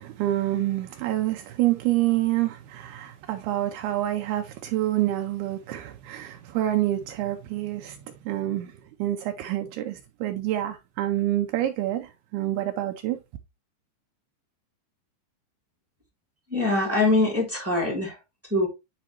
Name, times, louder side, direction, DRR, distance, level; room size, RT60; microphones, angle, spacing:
voice 1, 0.0-8.0 8.3-8.7 9.0-13.2, right 14 dB, 85° right, 2.2 m, -27 dB
voice 2, 16.5-18.1 18.5-18.7, left 2 dB, 10° right, 0.7 m, -23 dB
10.5 x 4.3 x 2.9 m
omnidirectional pair, 5.3 m